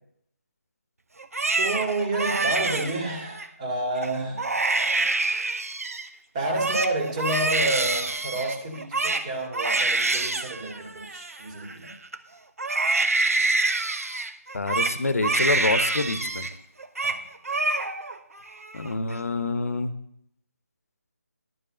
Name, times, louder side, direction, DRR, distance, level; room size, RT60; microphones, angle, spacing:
Crying sobbing, 1.2-3.5 4.0-4.1 4.4-6.1 6.4-12.2 12.6-16.5 16.8-17.2 17.4-18.2 18.5-19.1, right 3 dB, 65° right, 0.9 m, -26 dB
voice 1, 1.6-4.4 6.3-11.9 17.0-17.2, right 2 dB, 25° right, 1 dB, 2.2 m, -29 dB
voice 2, 14.5-16.5 18.7-20.0, left 3 dB, 65° left, 12 dB, 1.0 m, -27 dB
11.5 x 5.4 x 7.4 m, 0.75 s
figure-of-eight pair, 155°, 8 cm